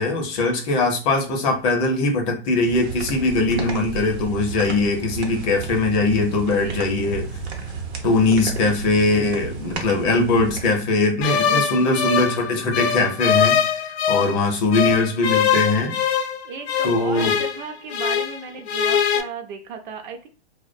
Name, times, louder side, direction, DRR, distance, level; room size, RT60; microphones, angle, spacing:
voice 1, 0.0-7.2 8.0-15.9 16.8-17.3, left 3 dB, 30° left, 2 dB, 0.5 m, -21 dB
sound 1, 2.7-10.8, right 5 dB, 80° right, 0.8 m, -33 dB
voice 2, 6.5-6.9 8.2-8.5 11.3-12.1 13.8-14.5 16.4-20.3, right 6 dB, 50° right, 5 dB, 0.5 m, -36 dB
sound 2, 11.2-14.4 14.7-18.4 18.7-19.2, left 8 dB, 80° left, 0.5 m, -22 dB
2.3 x 2.1 x 2.5 m, 0.34 s
hypercardioid pair, 135°, 32 cm